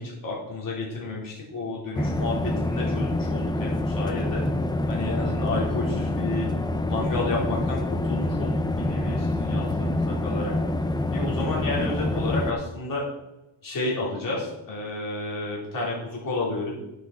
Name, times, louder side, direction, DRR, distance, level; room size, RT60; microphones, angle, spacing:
voice 1, 0.0-4.4 4.9-6.5 6.9-10.5 11.1-13.0 13.6-16.7, left 2 dB, 45° left, -4 dB, 4.0 m, -31 dB
sound 1, 1.9-12.5, left 1 dB, 10° left, 0.4 m, -26 dB
10.5 x 8.2 x 4.3 m, 0.92 s
wide cardioid pair, 155°, 47 cm